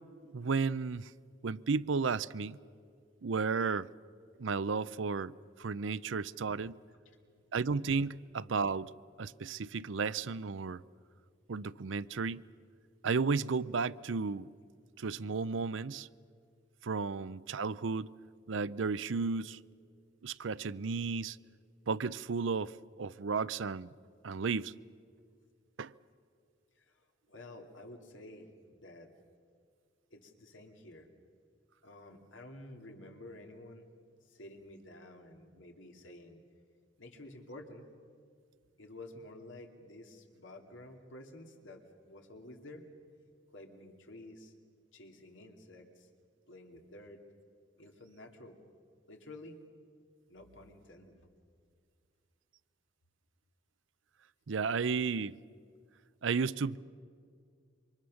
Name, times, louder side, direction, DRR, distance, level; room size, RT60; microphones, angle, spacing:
voice 1, 0.3-1.1 1.4-2.6 3.2-3.9 4.4-5.3 5.6-6.8 7.5-8.9 9.2-10.8 11.5-12.5 13.0-14.5 15.0-16.1 16.8-18.1 18.5-19.6 20.2-21.4 21.9-23.9 24.2-24.7 25.8-25.9 54.5-55.4 56.2-56.8, right 4 dB, 80° right, 0.6 m, -33 dB
voice 2, 27.3-28.5 28.8-29.1 30.1-31.1 31.8-33.9 34.3-36.4 37.0-37.9 38.8-42.9 43.5-44.5 44.9-46.1 46.5-47.2 47.8-48.6 49.1-49.6 50.3-51.2, left 1 dB, 80° left, 2.6 m, -51 dB
27.0 x 25.0 x 6.4 m
head